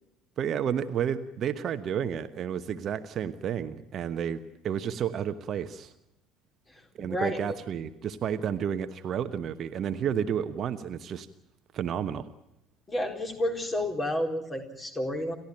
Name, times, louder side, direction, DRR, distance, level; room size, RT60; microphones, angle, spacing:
voice 1, 0.4-4.4 4.6-5.9 7.0-11.3 11.7-12.3, right 8 dB, 40° right, 10 dB, 1.1 m, -31 dB
voice 2, 6.7-7.4 12.9-15.3, left 1 dB, 20° left, 4 dB, 4.2 m, -31 dB
29.5 x 13.0 x 9.1 m, 0.85 s
figure-of-eight pair, 60°, 0 cm